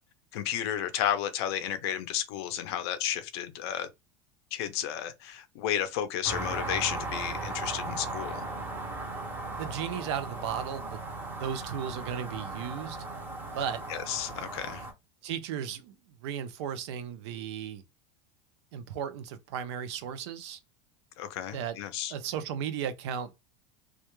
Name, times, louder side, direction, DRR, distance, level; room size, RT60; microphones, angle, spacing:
voice 1, 0.3-3.9 4.5-8.5 13.9-14.9 21.2-22.1, left 10 dB, 60° left, 0.5 m, -32 dB
sound 1, 6.2-14.9, right 2 dB, 15° right, 0.5 m, -37 dB
voice 2, 9.5-13.0 13.5-13.8 15.2-17.8 18.7-20.6 21.5-21.8 22.1-23.3, right 8 dB, 70° right, 0.5 m, -35 dB
2.3 x 2.1 x 2.9 m
supercardioid pair, 175°, 15 cm